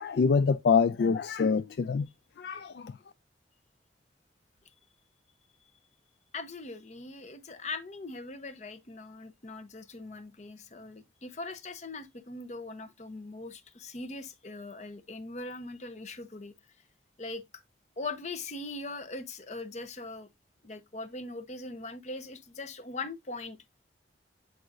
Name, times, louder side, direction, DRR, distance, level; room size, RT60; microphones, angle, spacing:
voice 1, 0.0-2.1 2.4-2.9, left 5 dB, 60° left, 0.3 m, -25 dB
voice 2, 6.3-16.5 17.2-17.4 18.0-20.3 20.6-23.6, left 3 dB, 40° left, 0.7 m, -41 dB
7.8 x 4.8 x 2.5 m
head